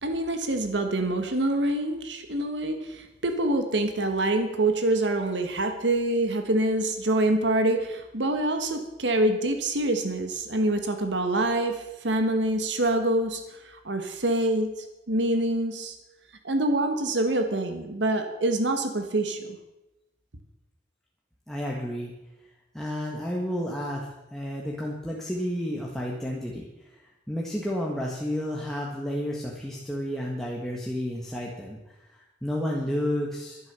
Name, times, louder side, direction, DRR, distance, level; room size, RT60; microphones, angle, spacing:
voice 1, 0.0-14.7 15.1-16.0 16.4-19.6, right 1 dB, 75° right, 7 dB, 1.5 m, -26 dB
voice 2, 21.5-22.1 22.7-24.0 24.3-27.0 27.3-33.6, equal, ahead, -3 dB, 1.6 m, -31 dB
12.0 x 11.0 x 6.9 m, 0.97 s
head